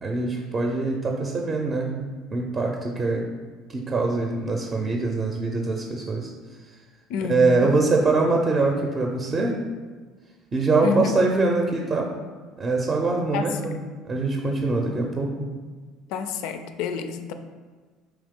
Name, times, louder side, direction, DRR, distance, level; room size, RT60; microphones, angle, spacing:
voice 1, 0.0-2.1 2.3-3.3 3.7-6.3 7.2-9.6 10.5-12.1 12.6-13.8 14.0-15.3, right 3 dB, 30° right, 1 dB, 0.6 m, -23 dB
voice 2, 7.1-7.8 10.8-11.1 13.3-13.8 16.1-17.3, left 6 dB, 70° left, 8 dB, 0.4 m, -29 dB
4.6 x 3.0 x 3.6 m, 1.5 s
hypercardioid pair, 80°, 0 cm